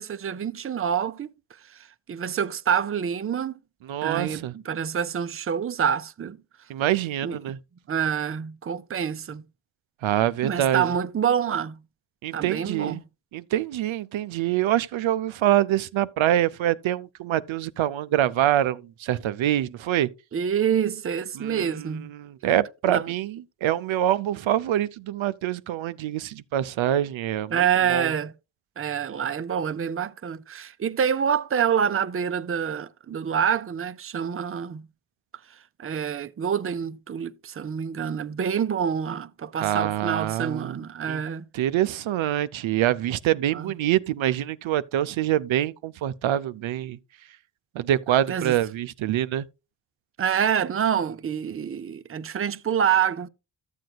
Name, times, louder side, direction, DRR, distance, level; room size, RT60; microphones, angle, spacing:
voice 1, 0.0-1.3 1.6-3.5 4.0-6.4 7.2-7.4 7.9-9.4 10.4-11.8 12.3-13.0 20.3-22.1 22.9-23.0 27.5-28.3 28.8-34.9 35.5-41.5 43.5-43.7 48.3-48.5 50.2-53.3, right 8 dB, 30° right, 0.5 m, -27 dB
voice 2, 3.8-4.5 6.7-7.6 10.0-10.9 12.2-13.0 13.3-20.1 21.3-28.1 39.6-40.8 41.1-41.2 41.5-47.0 47.7-49.5, right 12 dB, 85° right, 0.5 m, -25 dB
13.0 x 7.7 x 2.3 m
cardioid pair, 65°, 46 cm